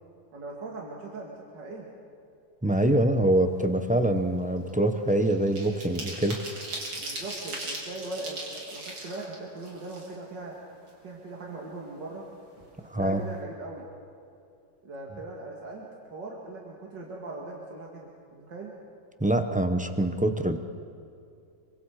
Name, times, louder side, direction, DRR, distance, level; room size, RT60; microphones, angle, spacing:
voice 1, 0.3-1.9 7.0-10.5 11.0-12.3 12.9-13.9 14.8-18.7, right 2 dB, 60° right, -2 dB, 2.8 m, -40 dB
voice 2, 2.6-6.4 12.9-13.2 19.2-20.6, right 1 dB, 10° right, 6 dB, 0.5 m, -24 dB
sound 1, 3.5-3.7 4.1-10.5 10.9-11.0 11.3-12.3 12.6-12.7 13.0-13.3, right 2 dB, 85° right, 4.4 m, -39 dB
26.5 x 24.5 x 4.9 m, 2.5 s
omnidirectional pair, 2.1 m